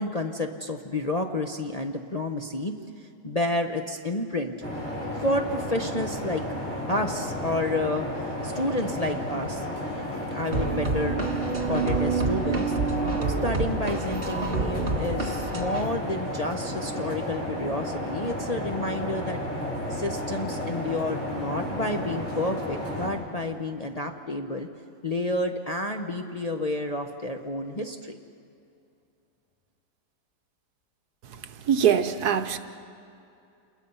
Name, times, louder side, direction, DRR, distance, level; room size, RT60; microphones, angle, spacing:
voice 1, 0.0-2.9 3.2-4.8 5.2-6.4 6.9-8.1 8.4-9.7 10.3-11.2 11.7-12.8 13.4-19.4 19.9-24.7 25.0-28.2, left 1 dB, 30° left, 3 dB, 0.8 m, -30 dB
sound 1, 4.6-23.1, left 1 dB, 10° left, 6.8 m, -32 dB
sound 2, 10.5-15.9, right 4 dB, 35° right, 1.8 m, -28 dB
voice 2, 31.7-32.6, right 8 dB, 70° right, 10 dB, 1.4 m, -22 dB
28.5 x 21.0 x 5.6 m, 2.6 s
omnidirectional pair, 1.8 m